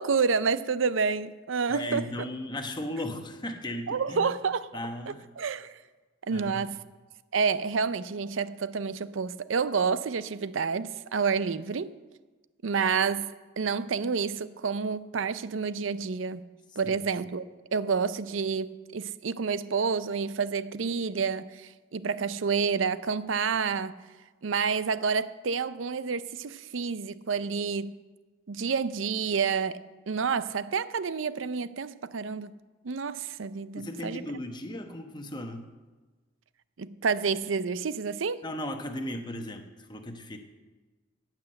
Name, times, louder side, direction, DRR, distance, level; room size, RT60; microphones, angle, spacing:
voice 1, 0.0-2.0 3.9-4.7 5.4-5.8 6.3-6.8 7.3-12.0 12.6-16.4 16.8-17.5 17.7-24.0 24.4-27.9 28.5-32.5 32.8-34.2 36.8-38.4, right 5 dB, 80° right, 0.5 m, -29 dB
voice 2, 1.7-4.3 4.7-5.2 6.3-6.7 16.8-17.0 33.7-35.7 38.4-40.4, left 1 dB, 20° left, 1.0 m, -36 dB
17.5 x 6.0 x 7.7 m
head